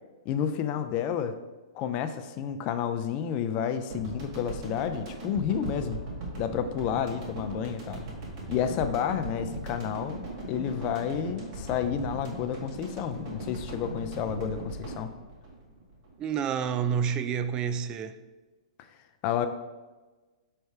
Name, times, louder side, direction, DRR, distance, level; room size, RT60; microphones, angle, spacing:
voice 1, 0.3-1.4 1.7-6.0 6.4-8.0 8.5-10.2 10.5-15.1 19.2-19.5, left 8 dB, 35° left, 0.4 m, -30 dB
sound 1, 3.9-16.4, right 2 dB, 45° right, 1.9 m, -39 dB
voice 2, 16.2-18.2, right 7 dB, 25° right, 0.4 m, -29 dB
6.4 x 3.3 x 4.7 m
hypercardioid pair, 135°, 3 cm